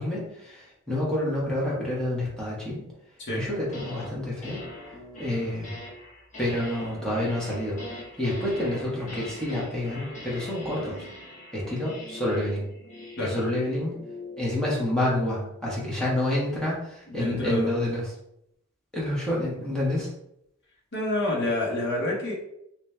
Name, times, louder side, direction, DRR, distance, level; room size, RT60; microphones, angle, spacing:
voice 1, 0.0-2.8 3.3-4.6 5.2-5.7 6.4-7.8 8.2-11.0 11.5-12.6 13.2-14.0 14.4-18.1 18.9-20.1, left 1 dB, 5° left, -6 dB, 1.2 m, -28 dB
sound 1, 3.7-4.1 4.4-14.8, left 2 dB, 35° left, 0.9 m, -41 dB
voice 2, 17.1-17.7 20.9-22.3, left 1 dB, 55° left, -3 dB, 1.3 m, -28 dB
3.2 x 3.1 x 3.2 m, 0.78 s
head